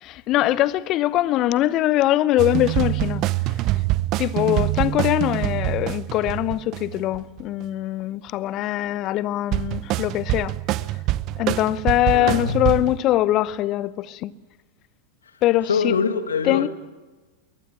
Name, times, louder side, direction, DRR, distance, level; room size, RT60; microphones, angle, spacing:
voice 1, 0.0-3.2 4.2-10.6 11.4-14.3 15.4-16.0 16.4-16.7, left 14 dB, 40° left, 0.9 m, -22 dB
sound 1, 2.4-7.4 9.5-13.0, right 16 dB, 45° right, 0.7 m, -25 dB
voice 2, 12.1-12.6 15.7-16.7, left 5 dB, 80° left, 2.1 m, -23 dB
22.5 x 18.5 x 8.7 m
hypercardioid pair, 95°, 0 cm